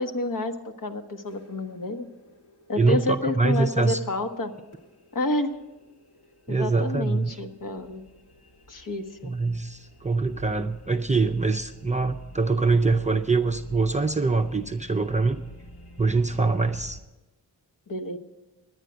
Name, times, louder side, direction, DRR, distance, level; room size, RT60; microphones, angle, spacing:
voice 1, 0.0-2.1 2.7-4.5 5.1-5.5 6.5-8.0 8.7-9.3 17.9-18.2, left 2 dB, 55° left, 6 dB, 1.1 m, -29 dB
sound 1, 1.2-17.0, equal, 75° left, 2.1 m, -48 dB
voice 2, 2.8-4.0 6.5-7.3 9.2-15.4 16.0-17.0, right 3 dB, 20° right, 4 dB, 0.5 m, -24 dB
11.0 x 8.9 x 7.9 m, 1.1 s
wide cardioid pair, 90°, 40 cm